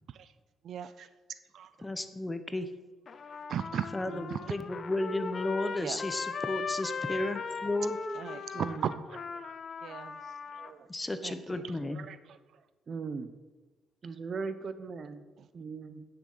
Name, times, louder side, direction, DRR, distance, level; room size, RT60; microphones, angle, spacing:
voice 1, 0.6-1.4 3.5-3.9 4.3-4.4 5.8-6.0 8.2-9.2 9.8-10.2 10.5-10.9 11.2-12.6 15.4-15.5, right 8 dB, 65° right, 13 dB, 0.4 m, -38 dB
voice 2, 1.8-2.7 3.9-8.0 10.9-12.1, left 2 dB, 15° left, 10 dB, 0.8 m, -33 dB
Trumpet, 3.1-10.7, left 5 dB, 45° left, 0.6 m, -39 dB
voice 3, 8.5-8.9 12.9-13.3 14.0-15.2 15.5-16.0, right 4 dB, 45° right, 12 dB, 0.8 m, -38 dB
9.5 x 7.1 x 5.6 m, 1.3 s
cardioid pair, 90°, 0 cm